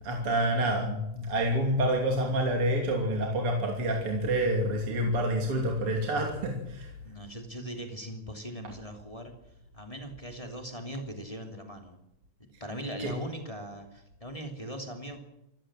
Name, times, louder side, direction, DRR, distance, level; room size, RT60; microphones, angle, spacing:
voice 1, 0.0-6.9 13.0-13.1, right 1 dB, 35° right, 1 dB, 3.3 m, -28 dB
voice 2, 7.0-9.3 9.7-12.0 12.6-15.2, right 1 dB, 10° left, 3 dB, 2.4 m, -40 dB
26.5 x 15.5 x 7.7 m, 0.89 s
omnidirectional pair, 4.7 m